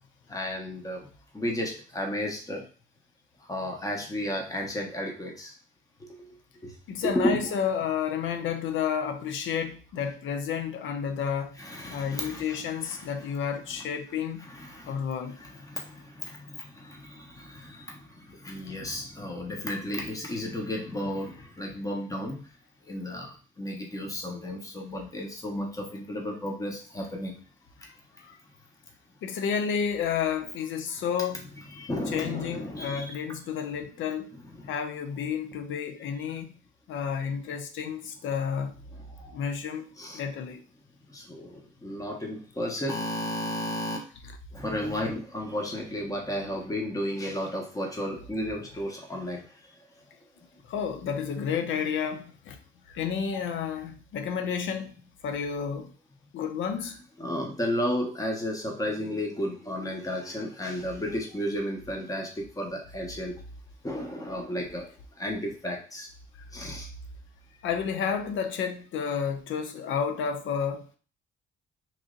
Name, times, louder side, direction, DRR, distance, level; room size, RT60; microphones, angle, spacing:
voice 1, 0.3-1.1 1.3-2.6 3.5-5.5 6.0-6.1 6.6-6.7 7.0-7.4 7.7-7.8 11.6-12.4 12.8-13.1 14.6-14.9 15.4-22.4 22.9-27.4 31.7-33.2 34.6-34.7 39.2-39.4 40.0-40.2 41.1-44.0 44.5-49.4 57.2-63.3 63.8-64.9 65.2-66.1 66.5-66.9, equal, 15° left, 1.1 m, -33 dB
voice 2, 6.9-11.6 11.9-14.4 14.9-15.4 27.8-28.4 29.2-31.5 32.1-34.3 34.7-36.5 36.9-38.7 39.3-39.9 40.1-40.6 44.2-44.3 50.6-52.6 52.9-54.9 55.2-55.9 56.3-57.0 66.4-66.5 67.6-70.9, left 7 dB, 75° left, 0.6 m, -31 dB
3.2 x 2.6 x 3.8 m
cardioid pair, 90°, 20 cm